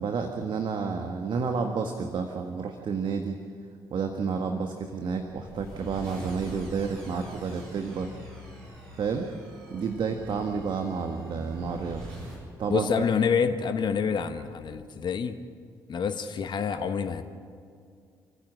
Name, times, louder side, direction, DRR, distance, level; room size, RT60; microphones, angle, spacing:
voice 1, 0.0-3.3 3.9-8.1 9.0-9.3 9.7-12.0 12.6-12.9, right 5 dB, 50° right, 5 dB, 1.7 m, -30 dB
sound 1, 5.1-12.4, right 1 dB, 75° right, 7.9 m, -44 dB
voice 2, 12.7-15.4 15.9-17.2, left 6 dB, 50° left, 9 dB, 1.3 m, -27 dB
28.5 x 15.0 x 7.7 m, 2.3 s
figure-of-eight pair, 45°, 10 cm